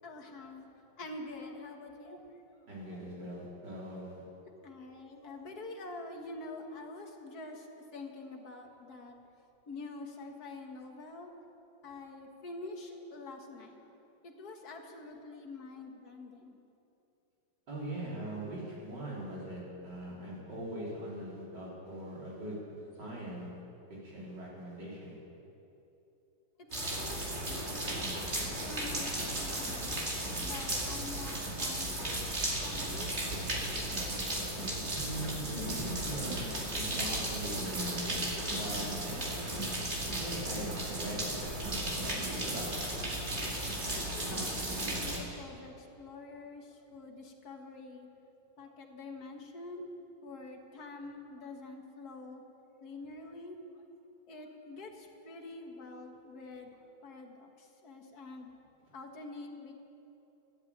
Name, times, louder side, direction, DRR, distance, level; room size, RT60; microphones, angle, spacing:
voice 1, 0.0-2.3 2.8-3.0 3.7-3.8 4.6-9.2 9.7-11.4 11.8-13.8 14.2-16.6 26.7-28.1 28.5-30.0 30.4-32.1 32.6-33.9 43.9-48.1 48.6-49.9 50.2-52.4 52.8-53.6 54.3-58.5 58.9-59.7, left 2 dB, 50° left, 2 dB, 2.0 m, -46 dB
voice 2, 2.7-4.2 17.7-22.6 23.0-23.5 23.9-25.2 34.9-38.3 38.6-39.5 40.0-42.7, right 1 dB, 60° right, -6 dB, 4.8 m, -41 dB
sound 1, 26.7-45.2, right 1 dB, 35° right, 2.5 m, -35 dB
12.5 x 12.0 x 8.7 m, 2.9 s
omnidirectional pair, 2.1 m